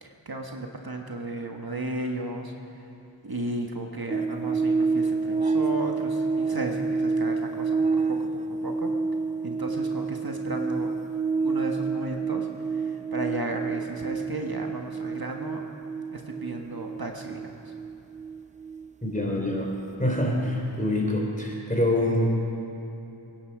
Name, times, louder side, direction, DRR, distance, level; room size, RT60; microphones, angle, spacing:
voice 1, 0.0-2.5 3.2-8.9 9.4-10.9 11.4-15.6 16.1-17.5, right 1 dB, 50° right, 2 dB, 1.4 m, -34 dB
sound 1, 4.1-20.6 20.9-21.1, right 4 dB, 15° right, 0.5 m, -29 dB
voice 2, 19.0-19.7 20.0-22.5, left 1 dB, 15° left, -1 dB, 3.7 m, -25 dB
23.5 x 10.5 x 4.8 m, 3.0 s
wide cardioid pair, 45°, 47 cm